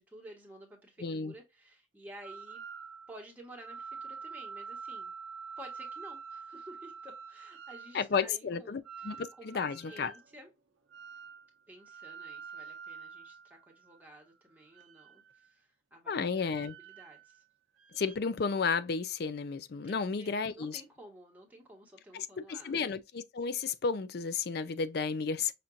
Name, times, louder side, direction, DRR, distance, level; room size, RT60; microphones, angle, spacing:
voice 1, 0.0-2.6 3.1-5.1 5.6-10.5 11.7-16.5 16.8-17.4 19.8-22.8, right 1 dB, 10° right, 1.4 m, -52 dB
voice 2, 1.0-1.3 7.9-10.1 16.1-16.8 17.9-20.8 22.1-25.5, left 5 dB, 55° left, 0.4 m, -33 dB
sound 1, 2.2-3.2 3.6-8.0 8.8-10.3 10.9-11.5 11.8-14.0 14.7-15.5 16.4-17.4 17.8-18.2, right 5 dB, 80° right, 0.7 m, -46 dB
5.8 x 2.6 x 2.5 m
head